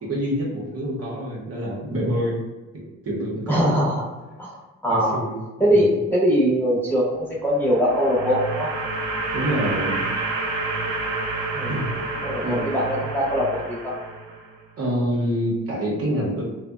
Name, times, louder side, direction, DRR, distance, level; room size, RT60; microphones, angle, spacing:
voice 1, 0.0-2.4 3.0-4.0 4.9-5.4 5.7-5.9 9.3-10.0 11.7-11.9 12.4-12.6 14.8-16.4, equal, 50° right, -3 dB, 0.8 m, -26 dB
voice 2, 3.5-4.0 4.4-5.2 5.6-8.7 11.5-11.7 12.2-14.0, equal, 5° left, -6 dB, 0.8 m, -22 dB
sound 1, 7.5-14.6, right 3 dB, 90° right, 0.5 m, -29 dB
2.6 x 2.1 x 2.3 m, 1.2 s
cardioid pair, 90°, 30 cm